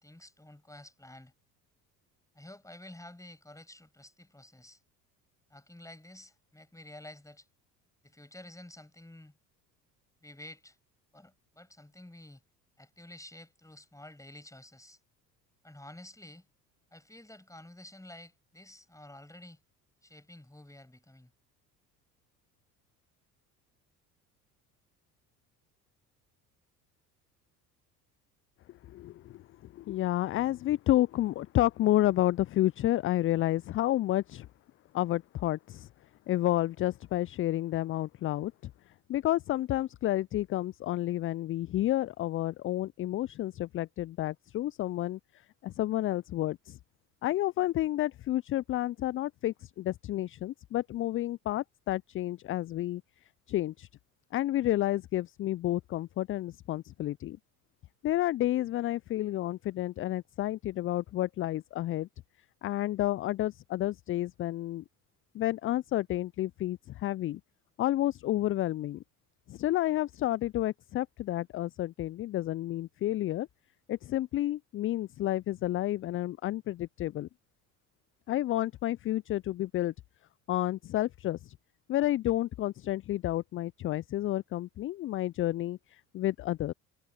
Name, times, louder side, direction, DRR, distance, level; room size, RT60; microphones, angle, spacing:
voice 1, 0.0-1.3 2.3-4.8 5.5-7.5 8.0-9.4 10.2-10.8 11.1-12.4 12.8-15.0 15.6-16.5 16.9-19.6 20.0-21.3, left 1 dB, 5° left, 7.6 m, -51 dB
voice 2, 28.9-29.4 29.7-34.5 34.9-35.9 36.3-38.7 39.1-46.8 47.2-53.0 53.5-53.9 54.3-57.4 58.0-62.1 62.6-64.8 65.3-67.4 67.8-69.0 69.5-73.5 73.9-77.3 78.3-79.9 80.5-81.5 81.9-86.7, left 14 dB, 30° left, 0.4 m, -30 dB
figure-of-eight pair, 60°, 47 cm